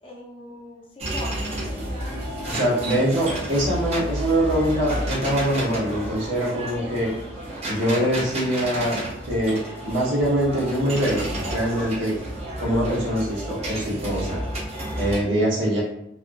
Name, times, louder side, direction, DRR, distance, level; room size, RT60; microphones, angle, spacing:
voice 1, 0.0-2.0, left 1 dB, 30° left, -2 dB, 0.5 m, -40 dB
sound 1, 1.0-15.2, right 1 dB, 35° right, 0.7 m, -31 dB
sound 2, 1.4-6.5, left 1 dB, 90° left, 0.6 m, -43 dB
voice 2, 2.5-7.1 7.7-9.0 9.3-12.2 12.6-14.4 14.9-15.8, right 1 dB, 75° right, -5 dB, 1.0 m, -23 dB
2.7 x 2.3 x 2.5 m, 0.78 s
head